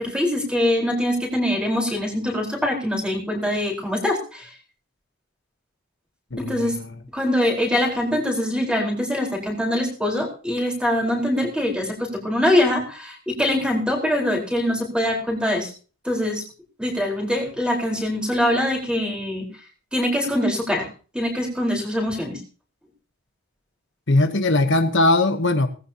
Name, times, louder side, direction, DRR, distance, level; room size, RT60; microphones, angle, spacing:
voice 1, 0.0-4.5 6.4-6.8 7.1-15.7 16.0-16.4 16.8-19.5 19.9-20.9 21.1-22.4, left 1 dB, 5° right, -1 dB, 4.5 m, -23 dB
voice 2, 6.3-6.7 24.1-25.7, left 2 dB, 55° left, 7 dB, 1.1 m, -19 dB
19.0 x 15.0 x 2.9 m, 0.37 s
head